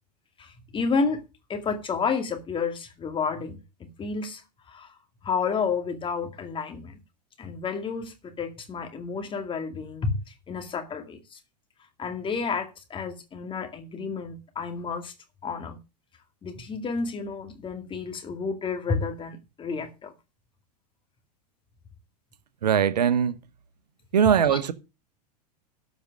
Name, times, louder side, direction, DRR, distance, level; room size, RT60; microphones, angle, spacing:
voice 1, 0.4-1.2 1.5-4.4 4.7-4.9 5.2-7.0 7.4-10.1 10.5-11.4 12.0-15.1 15.4-15.8 16.4-20.1 24.5-24.6, left 5 dB, 25° left, 2.4 m, -30 dB
voice 2, 22.6-23.4 24.1-24.7, right 8 dB, 80° right, 1.0 m, -21 dB
13.0 x 5.4 x 6.2 m
hypercardioid pair, 95°, 21 cm